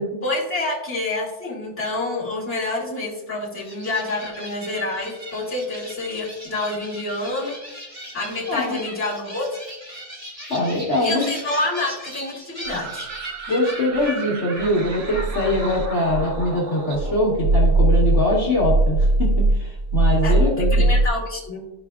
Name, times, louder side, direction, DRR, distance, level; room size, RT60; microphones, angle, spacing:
voice 1, 0.2-7.6 8.1-9.5 11.0-13.1 20.2-20.4 20.7-21.6, left 2 dB, 10° left, -7 dB, 2.1 m, -27 dB
sound 1, 3.6-18.2, equal, 10° right, 1.8 m, -37 dB
voice 2, 8.5-8.8 10.5-11.3 13.5-20.9, left 1 dB, 55° left, -4 dB, 1.7 m, -23 dB
sound 2, 12.6-16.5 16.9-21.1, right 2 dB, 85° right, 1.1 m, -21 dB
12.5 x 4.8 x 2.4 m, 0.99 s
omnidirectional pair, 1.5 m